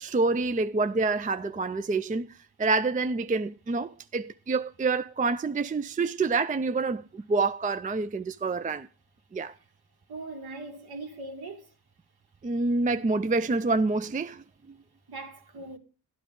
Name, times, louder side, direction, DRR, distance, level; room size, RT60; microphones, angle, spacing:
voice 1, 0.0-8.9 9.3-9.5 12.4-14.4, right 3 dB, 20° right, 0.5 m, -27 dB
voice 2, 10.1-11.7 15.1-15.8, right 2 dB, 55° right, 2.3 m, -40 dB
12.0 x 10.5 x 3.7 m
cardioid pair, 60°, 44 cm